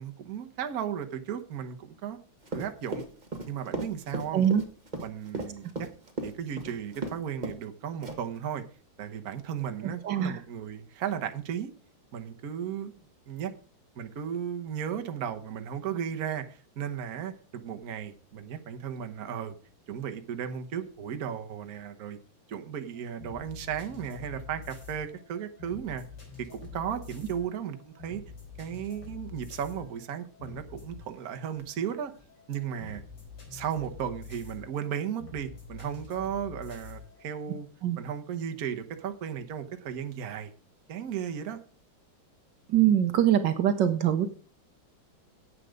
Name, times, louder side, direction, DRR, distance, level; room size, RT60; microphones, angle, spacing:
voice 1, 0.0-2.2 2.5-3.0 3.5-4.5 5.0-5.9 6.2-8.6 9.0-11.7 12.1-13.0 13.3-13.5 13.9-19.6 19.9-22.2 22.5-26.0 26.4-28.2 28.6-32.1 32.5-33.0 33.5-37.7 38.0-40.5 40.9-41.6, right 8 dB, 55° right, 7 dB, 1.4 m, -35 dB
Run, 2.4-7.2 7.4-7.7 8.0-8.4, right 2 dB, 25° right, 1.5 m, -35 dB
sound 1, 22.9-37.6, left 5 dB, 70° left, 5.0 m, -47 dB
voice 2, 42.7-44.3, right 10 dB, 70° right, 9 dB, 1.4 m, -23 dB
9.8 x 8.0 x 5.1 m, 0.40 s
omnidirectional pair, 2.1 m